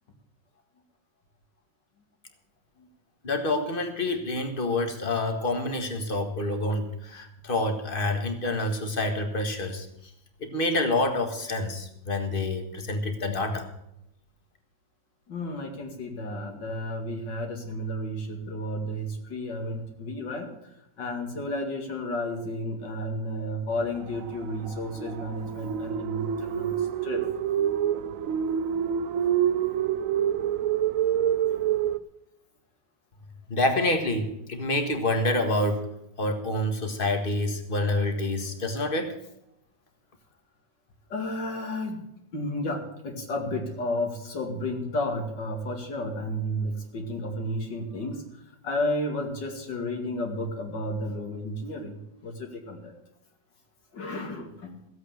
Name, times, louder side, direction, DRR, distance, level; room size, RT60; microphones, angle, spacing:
voice 1, 3.2-9.9 10.4-13.7 33.5-35.9 36.2-39.2, left 2 dB, 30° left, 6 dB, 1.7 m, -27 dB
voice 2, 15.3-20.5 21.0-27.3 41.1-42.1 42.3-52.0 52.2-52.9 53.9-54.8, left 1 dB, 70° left, 3 dB, 2.8 m, -32 dB
sound 1, 23.8-32.0, right 9 dB, 65° right, 0.8 m, -27 dB
15.0 x 8.1 x 7.8 m, 0.83 s
omnidirectional pair, 2.0 m